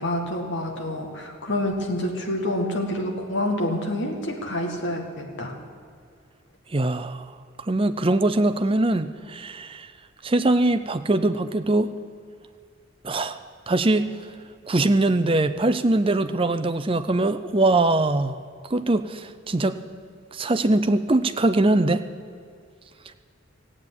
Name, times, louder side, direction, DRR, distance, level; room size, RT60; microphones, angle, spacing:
voice 1, 0.0-5.6, left 1 dB, 55° left, 2 dB, 2.1 m, -27 dB
voice 2, 6.7-7.3 7.7-9.9 10.2-11.9 13.0-14.1 14.7-18.4 18.7-19.8 20.3-22.0, right 2 dB, 25° right, 10 dB, 0.6 m, -22 dB
15.5 x 8.7 x 9.9 m, 2.3 s
head